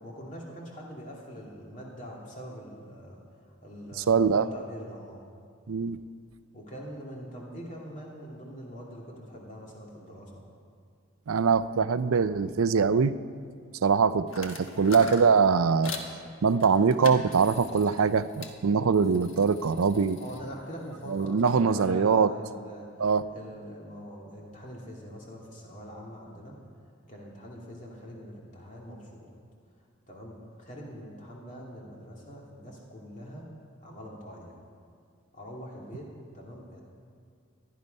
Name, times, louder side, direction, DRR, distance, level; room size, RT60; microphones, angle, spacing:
voice 1, 0.0-3.2 3.6-5.2 6.5-10.4 20.2-22.9 23.3-26.6 27.1-29.3 30.1-33.5 33.8-34.6 35.3-36.1 36.3-36.8, equal, 35° left, -3 dB, 2.6 m, -43 dB
voice 2, 4.1-4.4 5.7-6.0 11.3-13.1 13.8-15.9 16.4-20.2 21.1-22.3 23.0-23.2, right 5 dB, 80° right, 14 dB, 0.5 m, -23 dB
sound 1, 14.3-16.1 16.6-18.6 18.9-21.6, left 4 dB, 65° left, 1.4 m, -43 dB
16.0 x 11.5 x 5.4 m, 2.3 s
head